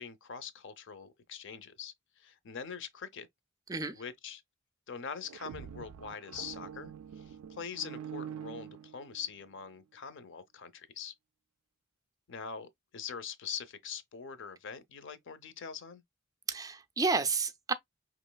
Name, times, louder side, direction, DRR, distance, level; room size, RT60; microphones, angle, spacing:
voice 1, 0.0-3.3 3.9-4.4 4.9-11.1 12.3-16.0, left 6 dB, 60° left, 0.6 m, -43 dB
sound 1, 5.1-9.4, right 8 dB, 90° right, 0.4 m, -45 dB
voice 2, 16.5-17.7, right 4 dB, 15° right, 0.4 m, -31 dB
5.1 x 3.0 x 2.2 m
head